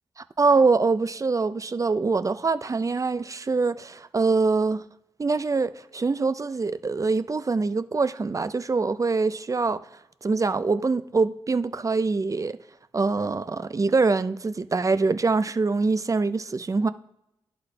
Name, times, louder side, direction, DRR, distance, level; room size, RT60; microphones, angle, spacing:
voice 1, 0.2-4.8 5.2-9.8 10.2-12.6 12.9-16.9, right 4 dB, 30° right, 0.4 m, -24 dB
11.0 x 3.9 x 3.3 m
supercardioid pair, 45°, 11 cm